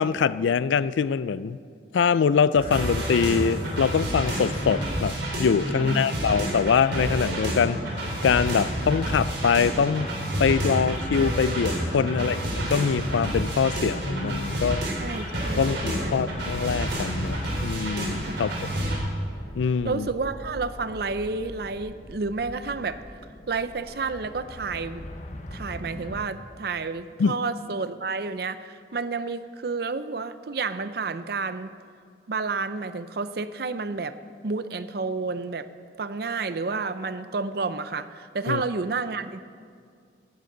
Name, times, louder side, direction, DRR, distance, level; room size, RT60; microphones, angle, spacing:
voice 1, 0.0-1.6 1.9-7.8 8.2-10.1 10.4-14.8 15.6-18.5 18.9-19.0 19.6-20.1 27.2-27.4 38.5-38.6, left 6 dB, 80° left, 17 dB, 0.4 m, -24 dB
sound 1, 2.5-19.0, right 1 dB, 75° right, 4.1 m, -29 dB
voice 2, 5.8-6.1 12.2-12.3 14.8-16.3 18.3-18.5 19.8-23.0 23.5-25.1 25.5-31.7 32.3-34.2 34.4-35.7 36.0-39.4, right 4 dB, 55° right, 12 dB, 0.5 m, -30 dB
sound 2, 11.9-26.2, left 1 dB, 40° left, 0.9 m, -42 dB
17.5 x 12.0 x 3.9 m, 2.2 s
head